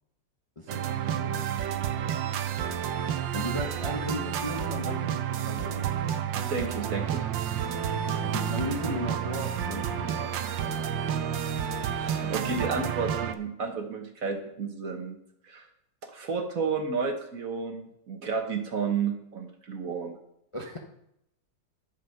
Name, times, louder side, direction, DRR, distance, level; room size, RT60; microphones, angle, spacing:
voice 1, 0.6-1.5 3.3-5.9 8.0-10.8 20.5-20.8, left 1 dB, 20° left, 1 dB, 0.9 m, -36 dB
sound 1, 0.7-13.3, right 9 dB, 80° right, 1.5 m, -30 dB
voice 2, 6.3-7.3 10.4-10.6 12.0-15.2 15.4-15.7 16.0-20.1, right 5 dB, 50° right, 5 dB, 1.5 m, -32 dB
11.0 x 7.0 x 5.7 m, 0.78 s
omnidirectional pair, 2.0 m